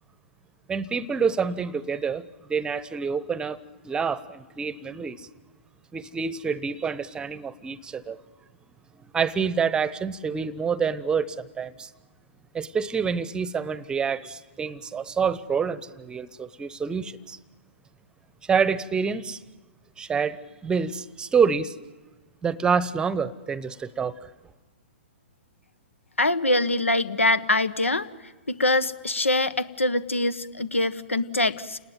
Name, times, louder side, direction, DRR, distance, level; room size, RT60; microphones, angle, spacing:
voice 1, 0.7-3.6 3.8-5.3 5.9-8.2 9.1-11.9 12.5-17.4 18.5-19.4 20.0-21.7 22.4-24.3, right 6 dB, 10° right, 0.9 m, -27 dB
voice 2, 26.2-28.1 28.5-31.8, left 2 dB, 85° left, 1.3 m, -24 dB
29.0 x 19.5 x 9.2 m
figure-of-eight pair, 120°, 7 cm